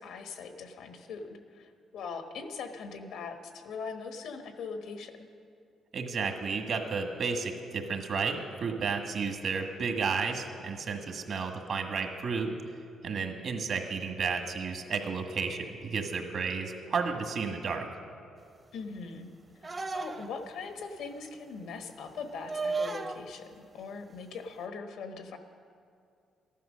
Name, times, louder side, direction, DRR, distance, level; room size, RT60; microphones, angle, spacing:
voice 1, 0.0-5.3 18.7-19.3 19.6-25.4, left 4 dB, 85° left, 6 dB, 1.2 m, -41 dB
voice 2, 5.9-12.5 13.0-17.9, right 5 dB, 60° right, 4 dB, 1.6 m, -32 dB
sound 1, 19.6-20.5 22.5-23.2 24.5-24.7, right 3 dB, 30° right, 0.8 m, -34 dB
14.0 x 11.0 x 6.4 m, 2.4 s
cardioid pair, 90°, 0 cm